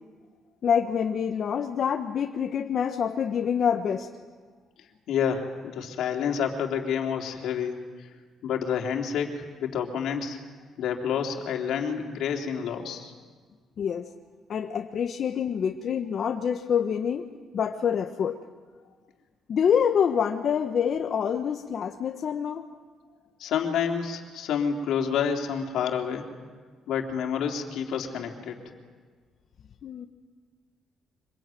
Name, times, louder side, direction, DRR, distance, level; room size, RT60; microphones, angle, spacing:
voice 1, 0.6-4.1 13.8-14.1 14.5-17.3 17.5-18.4 19.5-22.7 29.8-30.1, left 7 dB, 60° left, 5 dB, 1.2 m, -26 dB
voice 2, 5.1-7.8 8.4-10.4 10.8-13.1 23.4-26.3 26.9-28.6, left 7 dB, 80° left, 2 dB, 3.3 m, -29 dB
25.5 x 21.0 x 9.3 m, 1.5 s
cardioid pair, 90°, 0 cm